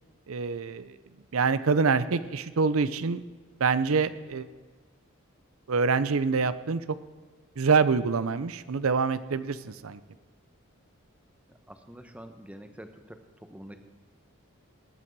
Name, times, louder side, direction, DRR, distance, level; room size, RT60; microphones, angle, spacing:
voice 1, 0.3-0.9 1.3-3.2 3.6-4.5 5.7-6.8 7.6-10.0, right 5 dB, 80° right, 14 dB, 0.6 m, -25 dB
voice 2, 11.5-13.8, equal, 5° right, 7 dB, 1.0 m, -47 dB
19.5 x 8.8 x 4.7 m, 1.4 s
head